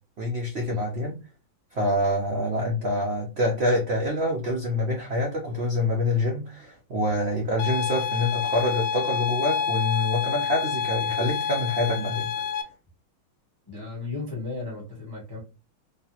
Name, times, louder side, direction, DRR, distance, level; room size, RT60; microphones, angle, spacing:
voice 1, 0.2-1.1 1.7-12.3, left 1 dB, 60° right, -1 dB, 0.6 m, -26 dB
sound 1, 7.6-12.6, left 8 dB, 75° left, 1.0 m, -28 dB
voice 2, 13.7-15.4, left 3 dB, 20° left, -3 dB, 0.6 m, -35 dB
3.3 x 2.8 x 2.8 m, 0.32 s
omnidirectional pair, 2.1 m